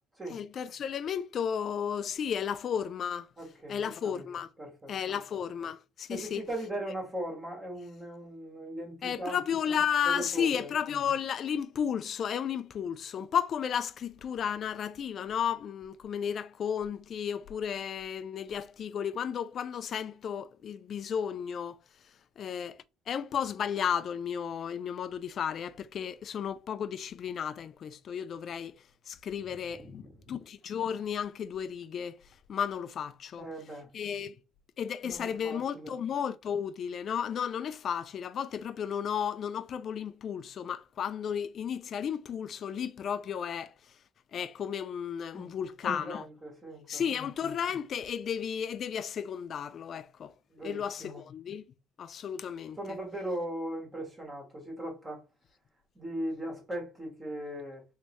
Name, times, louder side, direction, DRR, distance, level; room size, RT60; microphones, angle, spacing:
voice 1, 0.3-3.3 3.7-4.5 4.9-6.4 9.0-21.8 22.4-28.8 29.1-32.2 32.5-33.5 33.9-34.3 34.8-43.7 44.3-46.2 46.9-50.3 50.6-51.6 52.0-53.0, left 8 dB, 45° left, 0.3 m, -33 dB
voice 2, 3.4-4.3 4.6-4.9 6.1-9.4 10.0-10.7 29.8-30.2 33.4-33.9 35.0-35.9 45.3-45.5 45.8-47.0 50.5-51.2 52.8-55.2 55.9-57.8, right 1 dB, 20° right, 1.5 m, -39 dB
3.2 x 3.1 x 3.0 m
cardioid pair, 120°, 0 cm